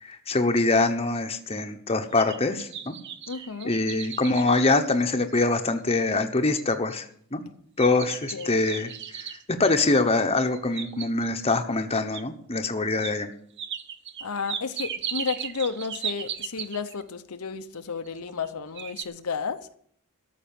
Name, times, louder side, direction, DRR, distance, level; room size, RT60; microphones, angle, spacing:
voice 1, 0.0-2.9 3.6-7.0 7.3-7.4 7.8-13.3, left 3 dB, 25° left, 1.0 m, -24 dB
sound 1, 1.9-5.5 6.0-6.1 6.6-6.9 7.8-9.4 10.4-11.4 12.1-12.2 13.0-13.2 13.6-17.0 18.1-18.5 18.8-19.1, right 8 dB, 50° right, 0.8 m, -36 dB
voice 2, 3.3-3.7 8.3-8.5 14.2-19.7, left 5 dB, 80° left, 0.8 m, -32 dB
13.5 x 6.2 x 9.3 m
head